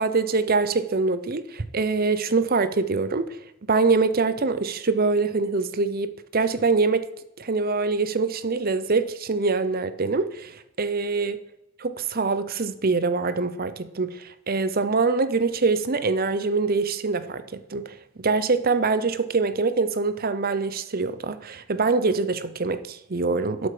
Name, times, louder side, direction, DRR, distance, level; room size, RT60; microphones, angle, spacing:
voice 1, 0.0-3.4 3.7-7.1 7.4-11.4 11.8-23.7, right 4 dB, 45° right, 0.7 m, -24 dB
12.0 x 8.0 x 5.0 m
head